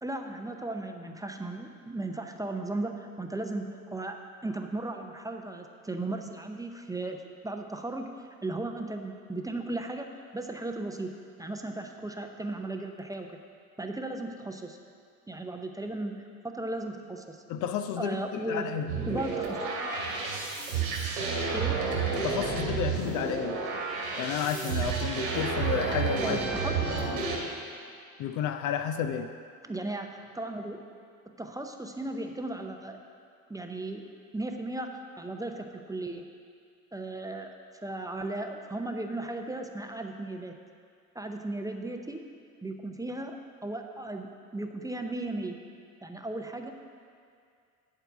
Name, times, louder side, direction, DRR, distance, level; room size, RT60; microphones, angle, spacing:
voice 1, 0.0-8.1 8.4-10.1 10.3-13.4 13.8-14.8 15.3-17.4 18.0-18.7 19.1-19.6 21.5-21.8 26.2-26.9 29.6-30.8 31.3-33.0 33.5-34.1 34.3-36.3 36.9-37.5 37.8-40.6 41.1-42.2 42.6-45.6 46.0-46.7, right 2 dB, 10° right, 4 dB, 0.6 m, -36 dB
voice 2, 17.5-18.9 22.2-23.6 24.2-26.5 28.2-29.3, left 8 dB, 45° left, 8 dB, 0.6 m, -31 dB
sound 1, 18.9-27.4, right 4 dB, 75° right, 2.2 m, -30 dB
11.0 x 4.5 x 6.9 m, 2.2 s
hypercardioid pair, 65°, 43 cm